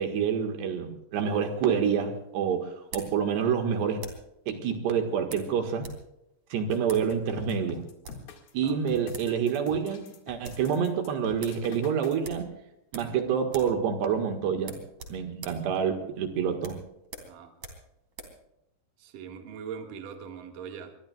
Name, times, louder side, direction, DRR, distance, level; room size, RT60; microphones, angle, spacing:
voice 1, 0.0-4.0 4.5-5.9 6.5-7.8 8.5-12.5 12.9-14.8 15.1-16.8, right 7 dB, 80° right, 5 dB, 3.7 m, -27 dB
sound 1, 1.4-4.4 5.3-6.0 6.3-6.4 6.8-7.1 7.8-8.3 8.9-9.0 9.1-9.4 9.7-9.8 10.1-10.7 11.0-11.1 11.4-11.6 12.2-13.2 13.5-13.8 14.1-14.2 14.6-18.4, right 3 dB, 40° right, 4.0 m, -45 dB
sound 2, 6.7-12.1, left 5 dB, 65° left, 3.8 m, -45 dB
voice 2, 19.0-21.0, right 7 dB, 60° right, 3 dB, 3.2 m, -41 dB
25.0 x 22.0 x 2.4 m, 0.84 s
omnidirectional pair, 4.8 m